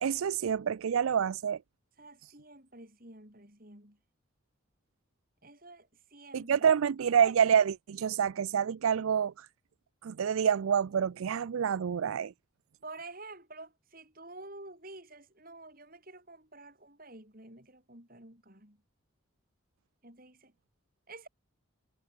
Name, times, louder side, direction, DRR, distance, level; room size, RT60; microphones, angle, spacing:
voice 1, 0.0-1.6 6.3-9.5 10.0-12.3, right 7 dB, 85° right, 0.4 m, -27 dB
voice 2, 2.0-4.0 5.4-6.6 12.8-18.8 20.0-20.5 21.1-21.3, right 2 dB, 45° right, 7.6 m, -49 dB
head